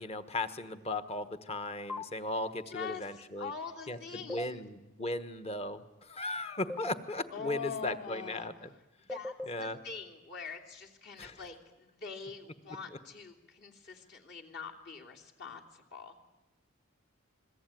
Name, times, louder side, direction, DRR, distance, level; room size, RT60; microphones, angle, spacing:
voice 1, 0.0-3.5 3.9-8.7 9.5-9.8 11.2-11.4, left 2 dB, 30° left, 10 dB, 1.3 m, -37 dB
sound 1, 1.9-2.1 4.3-4.5 6.7-6.9 9.1-9.5, left 2 dB, 10° left, 1.0 m, -37 dB
voice 2, 2.7-4.6 7.3-8.5 9.1-9.3 9.6-16.3, left 5 dB, 50° left, 1 dB, 3.3 m, -44 dB
27.0 x 22.0 x 9.3 m, 0.95 s
head